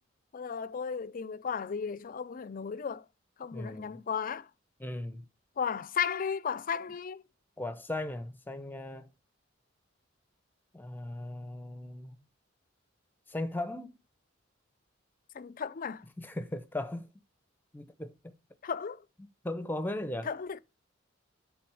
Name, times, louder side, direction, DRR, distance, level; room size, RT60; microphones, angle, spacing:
voice 1, 0.3-3.0 3.4-4.5 5.6-7.2 15.3-16.0 18.6-19.0 20.3-20.6, left 6 dB, 45° left, 0.4 m, -34 dB
voice 2, 3.5-4.0 4.8-5.2 7.6-9.1 10.7-12.2 13.3-14.0 16.2-17.1 17.7-18.4 19.4-20.3, left 1 dB, 10° left, 0.8 m, -37 dB
7.7 x 3.8 x 6.3 m
head